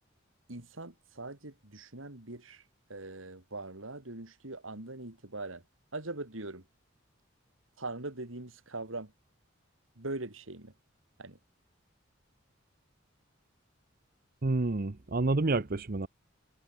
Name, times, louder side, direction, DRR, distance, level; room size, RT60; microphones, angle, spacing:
voice 1, 0.5-2.6 2.9-5.6 5.9-6.6 7.8-9.1 10.0-10.7 11.2-11.4, right 2 dB, 80° right, 3.1 m, -41 dB
voice 2, 14.4-16.1, right 2 dB, 45° right, 0.8 m, -29 dB
head